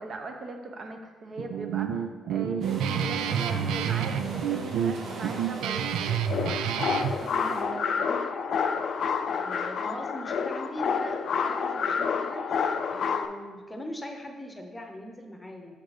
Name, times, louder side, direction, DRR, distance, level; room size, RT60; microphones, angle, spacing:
voice 1, 0.0-2.0 2.3-8.3, right 2 dB, 50° right, 4 dB, 0.9 m, -39 dB
Guitar, 1.4-7.1, right 8 dB, 90° right, 0.3 m, -29 dB
sound 1, 2.6-7.6, right 2 dB, 70° right, 1.1 m, -42 dB
sound 2, 6.3-13.3, left 6 dB, 60° left, 0.4 m, -28 dB
voice 2, 9.3-15.8, equal, 15° left, 4 dB, 0.8 m, -41 dB
6.6 x 3.9 x 4.8 m, 1.3 s
cardioid pair, 90°, 0 cm